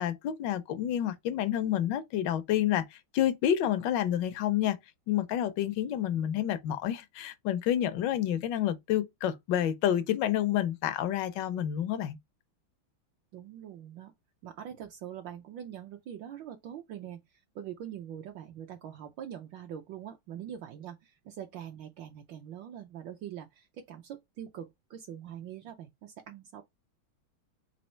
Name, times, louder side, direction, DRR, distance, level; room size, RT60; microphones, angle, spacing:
voice 1, 0.0-4.8 5.1-12.2, left 11 dB, 75° left, 1.1 m, -29 dB
voice 2, 13.3-14.1 14.4-26.6, right 10 dB, 75° right, 1.2 m, -43 dB
4.3 x 2.7 x 4.3 m
omnidirectional pair, 2.3 m